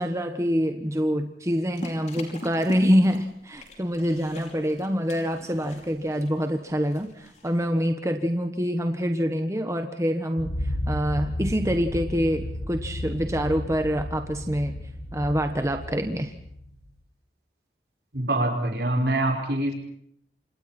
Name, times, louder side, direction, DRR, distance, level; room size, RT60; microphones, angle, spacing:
voice 1, 0.0-10.5 10.9-14.7 15.1-16.3, equal, 15° right, 6 dB, 1.3 m, -26 dB
sound 1, 1.7-7.7, left 1 dB, 40° left, 5.4 m, -43 dB
sound 2, 10.4-16.9, left 1 dB, 85° left, 6.2 m, -33 dB
voice 2, 18.1-19.7, right 1 dB, 65° right, 3 dB, 5.5 m, -24 dB
29.5 x 27.0 x 4.4 m, 0.70 s
head